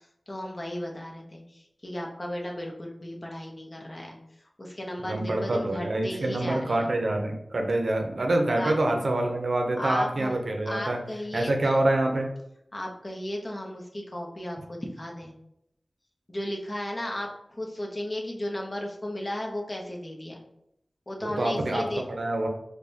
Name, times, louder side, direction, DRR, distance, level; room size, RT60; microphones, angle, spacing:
voice 1, 0.3-4.2 4.6-6.9 8.6-8.7 9.8-10.4 10.7-11.8 12.7-15.3 16.3-20.4 21.1-22.0, left 1 dB, 40° left, 0 dB, 0.8 m, -35 dB
voice 2, 5.0-11.0 11.3-12.3 21.2-22.5, right 1 dB, 75° right, 2 dB, 0.6 m, -26 dB
4.8 x 2.2 x 2.7 m, 0.77 s
cardioid pair, 45°, 0 cm